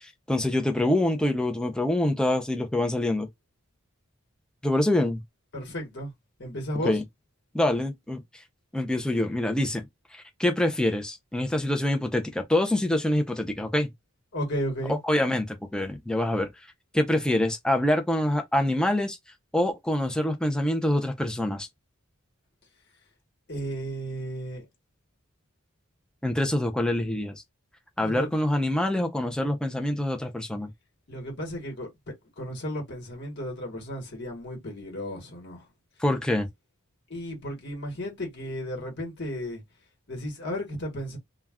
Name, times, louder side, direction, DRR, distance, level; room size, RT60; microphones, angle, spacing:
voice 1, 0.0-3.3 4.6-5.2 6.8-7.0 7.5-8.2 8.7-9.8 10.1-13.9 14.9-16.5 16.9-19.2 19.5-21.7 26.2-27.4 28.0-30.7 36.0-36.5, left 1 dB, 5° left, 0.4 m, -25 dB
voice 2, 5.5-6.1 6.4-7.0 14.3-15.0 23.5-24.6 28.0-28.3 31.1-35.6 37.1-39.6 40.1-41.2, equal, 55° left, 1.1 m, -34 dB
2.3 x 2.2 x 3.4 m
head